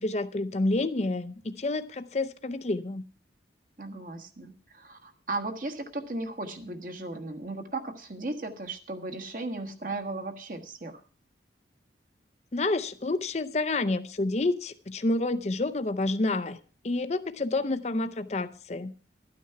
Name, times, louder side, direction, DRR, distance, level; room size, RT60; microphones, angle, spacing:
voice 1, 0.0-3.1 12.5-16.6 16.8-18.9, left 2 dB, 35° left, 0.5 m, -29 dB
voice 2, 3.8-11.0, right 2 dB, 45° right, 1.3 m, -36 dB
12.5 x 9.4 x 5.6 m
head